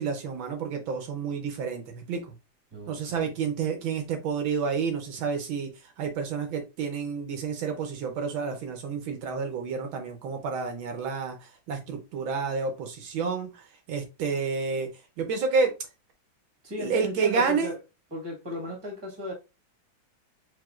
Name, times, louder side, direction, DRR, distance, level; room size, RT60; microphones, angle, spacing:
voice 1, 0.0-2.3 2.9-14.9 15.2-15.7 16.8-17.7, right 5 dB, 75° right, 1.5 m, -30 dB
voice 2, 2.7-3.3 16.6-17.8 18.1-19.3, left 1 dB, 15° right, 1.4 m, -35 dB
4.8 x 3.9 x 2.4 m
omnidirectional pair, 2.3 m